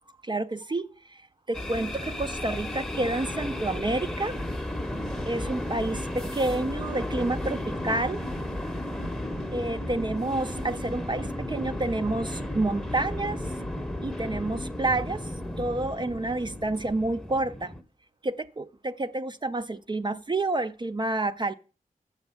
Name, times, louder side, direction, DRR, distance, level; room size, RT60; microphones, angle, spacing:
voice 1, 0.2-1.2 1.5-4.3 5.3-8.3 9.5-13.5 14.0-15.3 15.6-17.7 18.2-21.5, right 2 dB, 30° right, 0.4 m, -29 dB
sound 1, 1.5-17.8, left 1 dB, 5° left, 0.8 m, -34 dB
7.0 x 7.0 x 5.5 m
wide cardioid pair, 70°, 15 cm